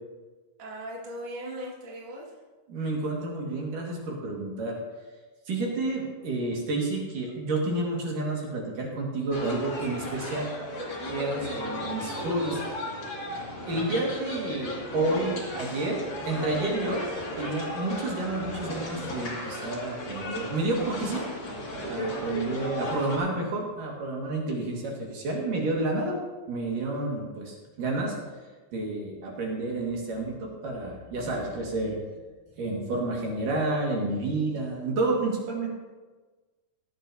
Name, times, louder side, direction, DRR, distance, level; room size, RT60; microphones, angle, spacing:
voice 1, 0.6-2.4, right 1 dB, 75° right, -3 dB, 1.1 m, -39 dB
voice 2, 2.7-4.8 5.5-10.5 11.1-12.6 13.7-17.1 17.4-21.2 21.9-26.2 26.5-28.2 28.7-32.0 32.6-35.7, right 2 dB, 55° right, -1 dB, 2.8 m, -30 dB
sound 1, 9.3-23.2, left 1 dB, 40° left, 1.8 m, -35 dB
17.5 x 11.5 x 2.8 m, 1.3 s
omnidirectional pair, 5.8 m